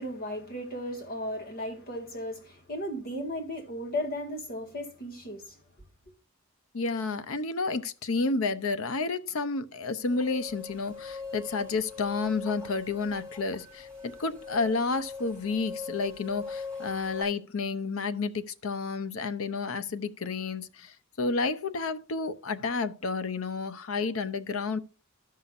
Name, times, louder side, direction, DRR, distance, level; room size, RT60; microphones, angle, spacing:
voice 1, 0.0-5.6, equal, 45° left, 1.7 m, -35 dB
voice 2, 6.7-24.8, left 4 dB, 70° left, 0.6 m, -31 dB
sound 1, 9.9-17.2, left 4 dB, 5° left, 2.5 m, -42 dB
14.0 x 5.6 x 2.5 m
head